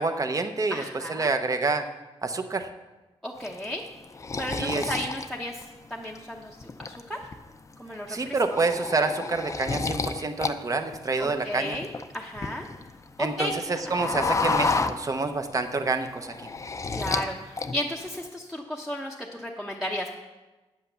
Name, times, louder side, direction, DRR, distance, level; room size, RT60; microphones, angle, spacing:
voice 1, 0.0-1.8 2.2-2.7 4.6-5.0 8.1-11.8 13.2-16.3, right 3 dB, 35° right, 7 dB, 0.8 m, -27 dB
voice 2, 0.7-1.3 3.2-3.8 4.4-5.6 5.9-7.2 7.8-8.3 11.2-11.9 12.1-12.7 13.2-13.6 13.9-14.0 16.9-20.1, left 1 dB, ahead, -2 dB, 0.8 m, -34 dB
sound 1, 3.4-6.2 6.6-7.3 7.7-7.9 8.3-10.5 10.8-12.9 13.2-15.5 15.9-17.3 17.6-18.2, left 4 dB, 30° left, 0.5 m, -30 dB
8.7 x 8.3 x 6.9 m, 1.2 s
wide cardioid pair, 145°, 10 cm